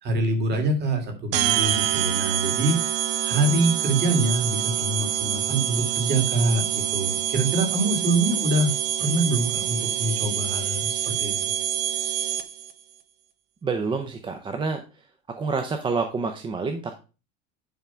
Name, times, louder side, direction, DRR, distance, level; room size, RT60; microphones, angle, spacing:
voice 1, 0.0-2.8 3.2-8.7 9.0-11.3, right 2 dB, 35° right, 5 dB, 2.3 m, -25 dB
sound 1, 1.3-12.7, right 11 dB, 60° right, 1.0 m, -26 dB
voice 2, 13.6-14.8 15.3-17.0, right 4 dB, 15° right, 5 dB, 0.5 m, -28 dB
10.5 x 3.6 x 5.6 m, 0.33 s
cardioid pair, 170°, 31 cm